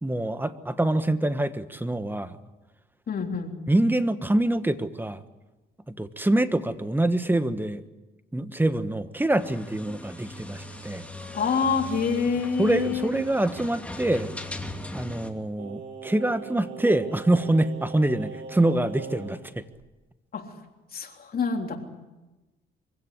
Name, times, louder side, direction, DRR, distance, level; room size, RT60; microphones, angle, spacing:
voice 1, 0.0-2.4 3.7-5.2 5.9-7.8 8.3-11.1 12.6-14.3 14.9-19.6, right 1 dB, 10° right, 11 dB, 1.4 m, -25 dB
voice 2, 3.1-3.6 11.3-13.1 20.3-20.4 20.9-21.8, left 5 dB, 50° left, 2 dB, 3.5 m, -26 dB
sound 1, 9.4-15.3, left 1 dB, 5° left, 2.7 m, -39 dB
Singing, 15.6-19.4 19.8-19.9, right 6 dB, 75° right, 2.5 m, -40 dB
24.5 x 16.5 x 9.8 m, 1.1 s
cardioid pair, 90°, 20 cm